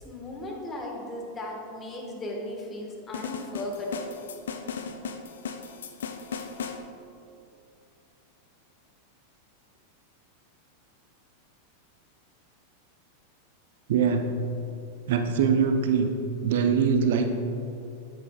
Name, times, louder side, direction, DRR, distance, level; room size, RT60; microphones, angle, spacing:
voice 1, 0.0-4.2, left 1 dB, 20° left, -1 dB, 1.4 m, -36 dB
sound 1, 3.1-6.8, left 6 dB, 65° left, 0.5 m, -36 dB
voice 2, 13.9-14.3 15.1-16.2 16.4-17.3, right 6 dB, 55° right, 6 dB, 0.5 m, -23 dB
9.2 x 8.2 x 2.3 m, 2.7 s
figure-of-eight pair, 90°, 0 cm